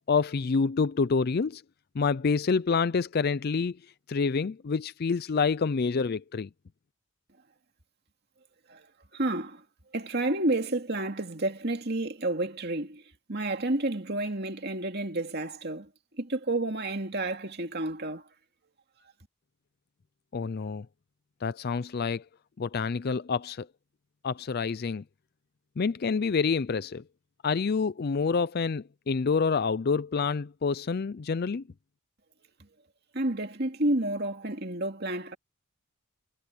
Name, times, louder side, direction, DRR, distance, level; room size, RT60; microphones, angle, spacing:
voice 1, 0.1-1.6 1.9-3.8 4.1-6.5 20.3-20.9 21.4-22.2 22.6-23.7 24.2-25.0 25.8-27.0 27.4-31.6, left 5 dB, 45° left, 0.4 m, -27 dB
voice 2, 9.1-9.6 9.9-13.0 13.3-15.9 16.2-18.2 33.1-35.4, right 2 dB, 45° right, 2.5 m, -30 dB
head